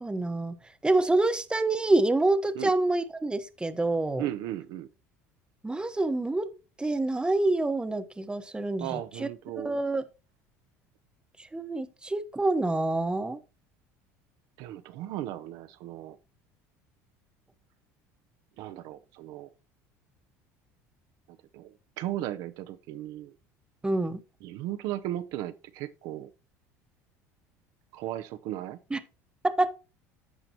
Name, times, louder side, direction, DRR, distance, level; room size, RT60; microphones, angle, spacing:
voice 1, 0.0-0.6 0.8-4.3 5.6-6.5 6.8-9.3 9.6-10.0 11.5-13.4 23.8-24.2 28.9-29.0 29.6-29.7, right 2 dB, 10° right, 1.1 m, -27 dB
voice 2, 4.2-4.9 8.8-9.8 14.6-16.2 18.6-19.5 21.5-23.3 24.4-26.3 27.9-28.8, right 13 dB, 70° right, 0.7 m, -36 dB
14.5 x 5.0 x 2.9 m
hypercardioid pair, 80°, 8 cm